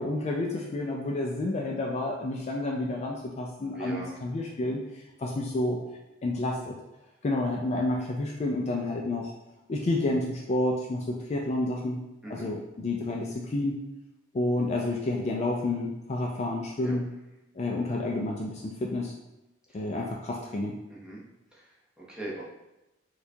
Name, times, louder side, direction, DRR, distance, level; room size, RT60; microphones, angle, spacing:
voice 1, 0.0-4.8 5.2-5.8 6.2-6.7 7.2-9.3 9.7-12.0 12.3-13.8 14.3-17.1 17.6-19.1 19.7-20.8, left 2 dB, 35° left, -1 dB, 0.3 m, -30 dB
voice 2, 3.7-4.2 12.2-12.5 16.8-17.0 19.7-19.8 20.9-21.2 21.5-22.4, right 1 dB, 5° right, -6 dB, 0.7 m, -40 dB
4.4 x 2.3 x 2.7 m, 0.96 s
head